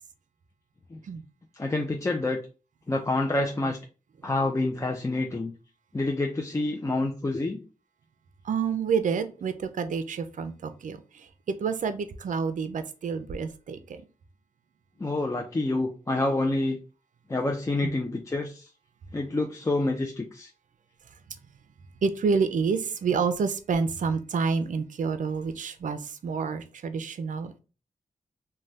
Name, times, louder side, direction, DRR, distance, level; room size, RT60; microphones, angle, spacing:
voice 1, 1.5-2.4 2.9-3.8 4.2-5.5 5.9-7.6 15.0-16.8 17.3-18.7 19.1-20.5, left 2 dB, 20° left, 1 dB, 0.4 m, -27 dB
voice 2, 8.4-14.0 22.0-27.6, right 5 dB, 65° right, 10 dB, 0.4 m, -28 dB
2.6 x 2.2 x 3.2 m, 0.34 s
cardioid pair, 65°, 14 cm